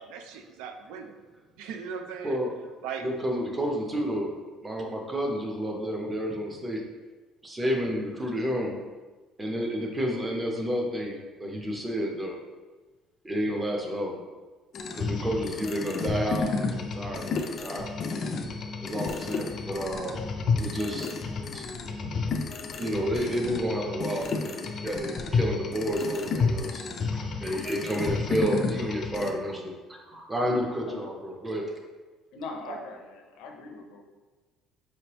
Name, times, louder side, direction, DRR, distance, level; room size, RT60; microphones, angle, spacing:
voice 1, 0.1-1.2 1.6-2.4 2.8-3.1 32.7-32.8, right 6 dB, 85° right, 5 dB, 0.5 m, -38 dB
voice 2, 2.2-2.5 3.0-4.3 4.6-6.8 7.4-8.8 9.4-12.4 13.2-14.2 14.9-17.9 18.8-20.2 20.6-21.1 21.5-21.6 22.8-26.8 27.1-31.7, equal, 15° right, 0 dB, 0.6 m, -30 dB
sound 1, 14.7-29.3, left 4 dB, 35° left, 0.3 m, -31 dB
voice 3, 32.3-34.1, left 3 dB, 75° left, 3 dB, 0.6 m, -41 dB
5.1 x 3.1 x 2.9 m, 1.3 s
cardioid pair, 170°, 0 cm